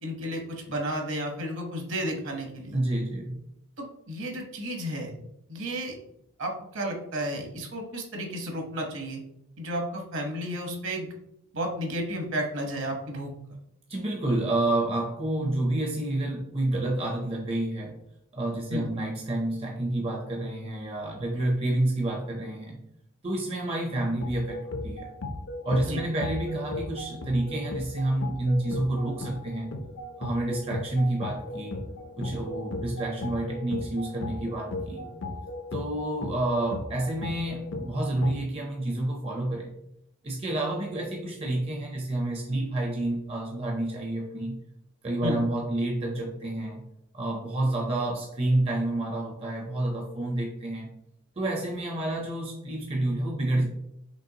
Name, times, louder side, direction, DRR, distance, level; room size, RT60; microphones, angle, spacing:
voice 1, 0.0-2.8 3.8-5.1 5.5-6.0 6.4-9.2 9.6-11.1 11.5-13.3 18.7-18.9 25.8-26.0 45.2-45.4, equal, 60° right, 2 dB, 1.0 m, -32 dB
voice 2, 2.7-3.4 13.9-18.0 18.3-22.8 23.2-25.1 25.6-29.8 30.2-31.8 32.2-35.1 35.7-39.7 40.2-44.6 45.0-46.8 47.1-50.9 51.4-53.6, right 1 dB, 25° right, 0 dB, 0.5 m, -29 dB
sound 1, 24.2-38.4, left 2 dB, 55° left, 0.5 m, -37 dB
5.2 x 3.3 x 2.8 m, 0.78 s
head